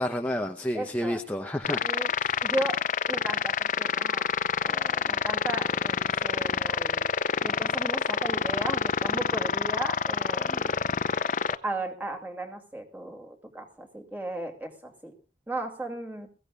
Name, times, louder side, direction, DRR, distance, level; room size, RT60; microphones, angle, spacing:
voice 1, 0.0-1.9 2.2-2.4, left 1 dB, 10° left, 3 dB, 0.8 m, -30 dB
voice 2, 0.7-1.2 1.8-2.1 2.4-2.8 3.1-4.3 4.6-7.0 7.4-10.9 11.5-15.1 15.5-16.3, right 1 dB, 10° right, 3 dB, 2.4 m, -35 dB
sound 1, 1.6-11.5, left 6 dB, 45° left, 0.6 m, -27 dB
22.0 x 15.5 x 2.4 m, 0.34 s
head